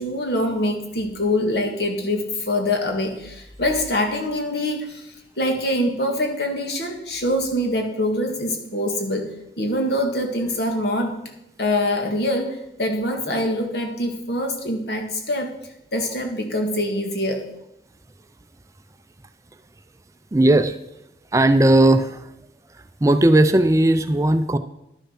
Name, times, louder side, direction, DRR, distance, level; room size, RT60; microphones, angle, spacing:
voice 1, 0.0-5.0 5.4-9.3 9.6-11.2 11.6-15.5 15.9-17.4, left 1 dB, 70° left, 3 dB, 1.9 m, -24 dB
voice 2, 20.3-20.8 21.3-22.3 23.0-24.6, right 1 dB, 15° right, 9 dB, 0.4 m, -16 dB
11.0 x 6.9 x 5.8 m, 0.85 s
head